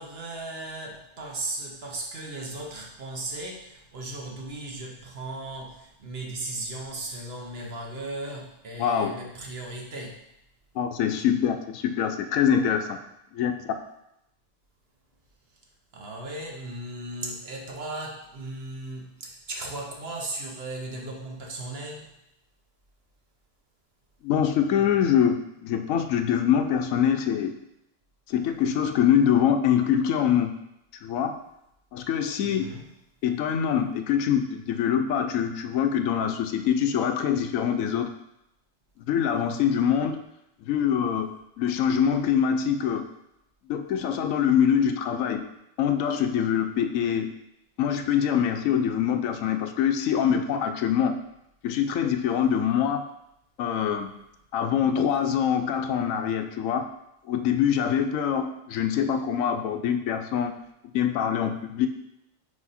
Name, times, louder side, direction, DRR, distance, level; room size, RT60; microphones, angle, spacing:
voice 1, 0.0-10.2 15.9-22.1 32.4-32.9, right 2 dB, 55° right, 0 dB, 1.2 m, -36 dB
voice 2, 8.8-9.1 10.7-13.0 13.3-13.5 24.2-27.6 28.3-30.5 31.0-31.3 31.9-32.7 33.2-38.1 39.0-40.2 40.7-41.3 41.6-43.1 43.7-45.4 45.8-47.3 47.8-51.2 51.6-53.1 53.6-54.1 54.5-56.9 57.3-60.5 60.8-61.9, left 8 dB, 90° left, 7 dB, 1.0 m, -24 dB
5.1 x 4.7 x 4.2 m, 0.83 s
omnidirectional pair, 1.3 m